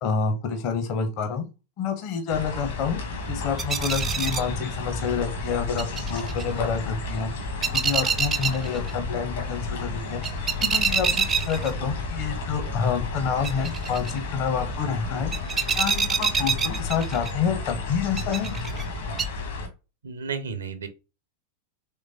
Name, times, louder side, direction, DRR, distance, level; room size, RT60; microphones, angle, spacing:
voice 1, 0.0-1.4 1.8-3.0 3.3-7.3 7.7-10.2 10.6-15.3 15.7-18.5, left 6 dB, 40° left, 0.7 m, -28 dB
sound 1, 2.3-19.7, left 4 dB, 60° left, 1.2 m, -32 dB
sound 2, 3.3-19.2, right 6 dB, 20° right, 0.4 m, -30 dB
voice 2, 20.0-20.9, right 5 dB, 70° right, 0.6 m, -32 dB
3.7 x 3.1 x 2.7 m
figure-of-eight pair, 90°, 0 cm